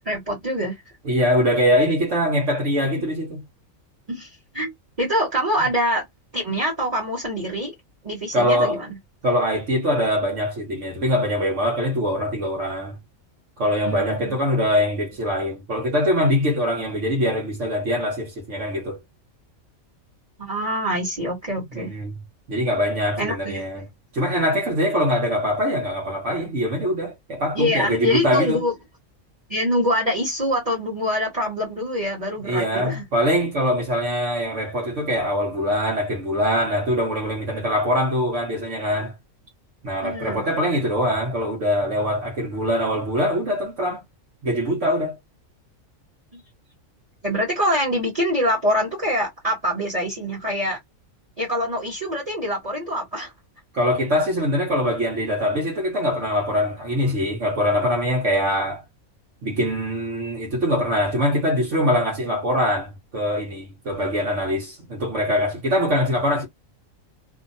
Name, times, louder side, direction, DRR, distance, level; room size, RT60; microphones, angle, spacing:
voice 1, 0.0-0.8 4.1-4.7 5.0-6.0 6.3-7.7 8.0-9.0 13.8-14.3 20.4-21.9 23.2-23.7 27.5-28.7 29.5-33.0 40.0-40.4 47.2-50.8 51.4-53.3, equal, 30° right, 1.2 m, -25 dB
voice 2, 1.0-3.4 8.3-8.8 9.2-13.0 13.6-19.0 21.7-22.2 22.5-23.9 24.1-28.6 32.4-39.1 39.8-44.0 44.4-45.2 53.7-58.8 59.4-66.5, equal, 65° right, 1.4 m, -23 dB
2.9 x 2.5 x 2.5 m
omnidirectional pair, 1.4 m